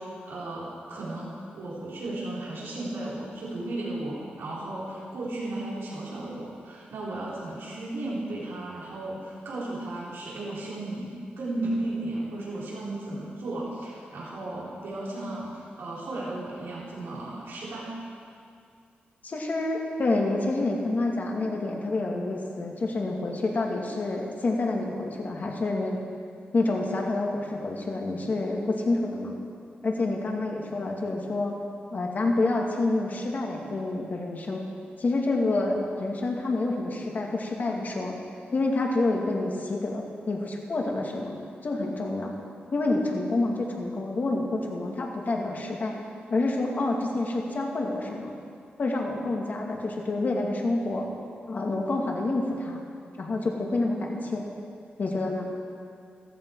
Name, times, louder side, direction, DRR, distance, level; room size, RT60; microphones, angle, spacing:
voice 1, 0.0-17.9, right 2 dB, 90° right, -7 dB, 4.4 m, -35 dB
voice 2, 19.2-26.0 26.5-29.3 29.8-31.6 31.9-34.6 35.0-38.2 38.5-41.4 41.6-42.3 42.7-46.0 46.3-48.3 48.8-51.0 51.5-52.8 53.2-54.5 55.0-55.5, left 2 dB, 50° left, 0 dB, 2.3 m, -28 dB
14.5 x 14.5 x 4.8 m, 2.3 s
cardioid pair, 80°, 4 cm